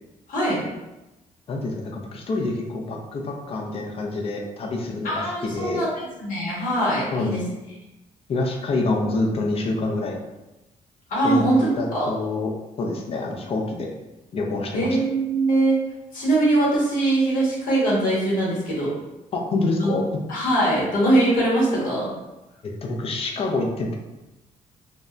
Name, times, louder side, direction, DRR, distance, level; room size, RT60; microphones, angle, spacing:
voice 1, 0.3-0.7 5.0-7.4 11.1-11.7 11.9-12.1 14.7-15.8 16.1-18.9 19.8-19.9 20.3-22.1, right 1 dB, 70° left, -6 dB, 1.1 m, -22 dB
voice 2, 1.5-5.8 7.1-7.3 8.3-10.2 11.2-12.5 12.8-13.9 14.3-15.0 19.3-20.0 22.8-24.0, left 2 dB, 40° left, 0 dB, 0.4 m, -26 dB
2.7 x 2.1 x 2.3 m, 1.0 s
cardioid pair, 105°, 15 cm